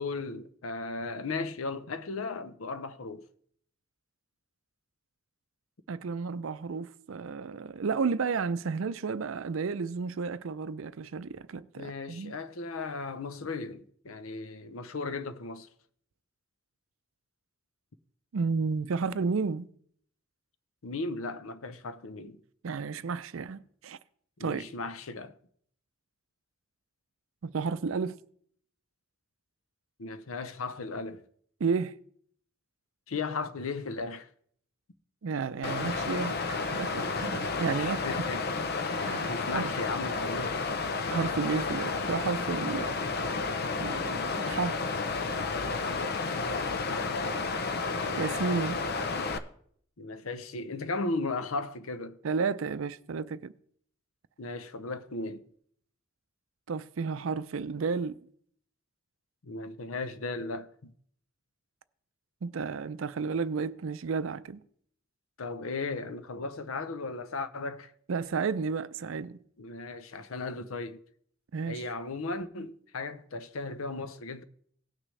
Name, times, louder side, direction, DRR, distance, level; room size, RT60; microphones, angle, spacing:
voice 1, 0.0-3.3 11.8-15.7 20.8-22.4 24.4-25.3 30.0-31.2 33.1-34.3 37.7-38.4 39.3-40.7 42.7-42.9 46.4-47.4 50.0-52.2 54.4-55.4 59.4-60.9 65.4-67.9 69.6-71.0 71.7-74.4, left 3 dB, 85° left, 0.7 m, -36 dB
voice 2, 5.9-12.3 18.3-19.7 22.6-24.0 24.4-24.6 27.4-28.2 31.6-31.9 35.2-38.0 39.0-39.7 41.1-43.0 43.8-44.8 48.2-48.8 52.2-53.5 56.7-58.2 62.4-64.6 68.1-69.4 71.5-71.8, right 5 dB, 75° right, 0.5 m, -32 dB
Water, 35.6-49.4, left 4 dB, 50° left, 0.6 m, -31 dB
18.0 x 6.2 x 3.3 m
head